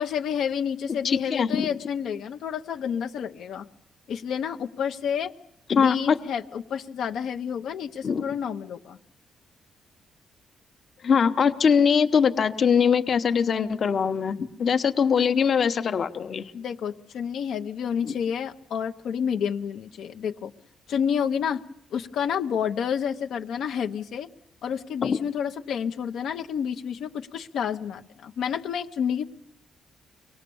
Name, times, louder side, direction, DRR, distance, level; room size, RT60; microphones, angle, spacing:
voice 1, 0.0-3.6 4.1-5.3 5.8-9.0 16.5-20.5 20.9-21.6 21.9-24.3 24.6-29.2, left 7 dB, 80° left, 5 dB, 0.8 m, -29 dB
voice 2, 1.0-1.7 5.7-6.2 8.0-8.3 11.0-16.5 18.0-18.1 25.0-25.2, left 6 dB, 50° left, 9 dB, 0.9 m, -22 dB
24.0 x 18.5 x 7.0 m, 0.80 s
cardioid pair, 120°, 0 cm